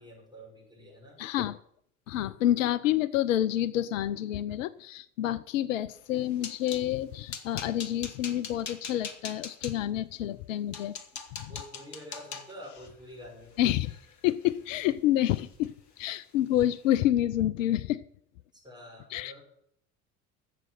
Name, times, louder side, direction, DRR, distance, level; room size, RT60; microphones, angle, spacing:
voice 1, 0.0-1.2 11.5-13.5 18.5-19.4, equal, 10° right, -2 dB, 5.6 m, -47 dB
voice 2, 1.2-1.6 2.1-10.9 11.4-11.5 13.6-13.9 14.2-18.0 19.1-19.3, left 12 dB, 60° left, 16 dB, 0.6 m, -28 dB
sound 1, 6.0-6.9 7.3-9.7 10.3-10.4 10.7-14.9 15.3-15.7 16.0-16.2 16.6-16.7, left 6 dB, 40° left, 1.6 m, -42 dB
12.0 x 7.6 x 7.7 m, 0.68 s
figure-of-eight pair, 65°, 44 cm